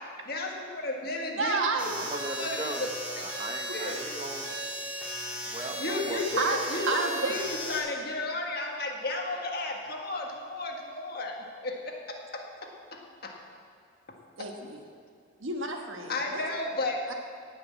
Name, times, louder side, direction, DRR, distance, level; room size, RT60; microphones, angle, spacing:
voice 1, 0.2-1.6 2.3-3.2 3.7-4.0 5.8-11.4 11.6-13.4 14.4-14.5 16.1-17.0, left 2 dB, 50° left, 1 dB, 1.7 m, -33 dB
voice 2, 1.3-1.9 3.7-3.8 5.4-5.6 6.3-6.6 6.9-7.3 14.4-14.8 15.4-16.4 17.1-17.2, right 3 dB, 80° right, 3 dB, 1.4 m, -30 dB
sound 1, 1.8-7.8, right 1 dB, 5° right, 2.3 m, -36 dB
voice 3, 1.9-2.8 3.2-4.5 5.5-6.2, right 2 dB, 25° right, 4 dB, 0.9 m, -37 dB
18.0 x 6.3 x 7.5 m, 2.2 s
head